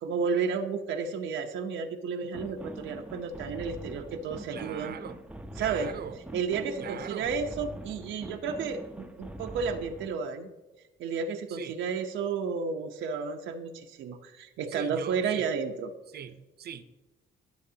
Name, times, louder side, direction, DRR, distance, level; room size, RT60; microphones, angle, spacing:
voice 1, 0.0-5.0 5.6-5.9 6.3-10.5 11.0-15.9, right 5 dB, 85° right, 3 dB, 0.9 m, -32 dB
sound 1, 2.3-10.2, right 1 dB, 5° right, 0.6 m, -43 dB
voice 2, 4.5-5.2 5.6-6.2 6.8-7.3 11.5-11.8 14.7-15.5 16.1-16.8, right 8 dB, 55° right, 11 dB, 0.8 m, -41 dB
21.0 x 7.2 x 2.8 m, 1.1 s
cardioid pair, 120°, 20 cm